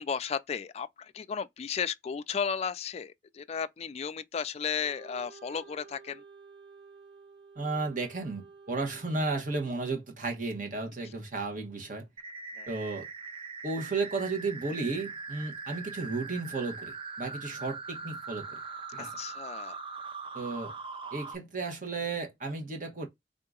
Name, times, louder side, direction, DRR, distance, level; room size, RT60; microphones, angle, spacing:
voice 1, 0.0-6.2 11.0-11.1 12.6-12.7 19.0-19.8, left 6 dB, 35° left, 0.3 m, -34 dB
Wind instrument woodwind instrument, 4.8-9.9, right 5 dB, 75° right, 1.4 m, -53 dB
voice 2, 7.6-12.0 12.7-13.1 13.6-18.6 18.9-19.1 20.3-20.7 21.1-23.1, right 3 dB, 50° right, 1.1 m, -34 dB
sound 1, 12.2-21.3, right 4 dB, 30° right, 0.5 m, -41 dB
3.7 x 2.8 x 3.6 m
head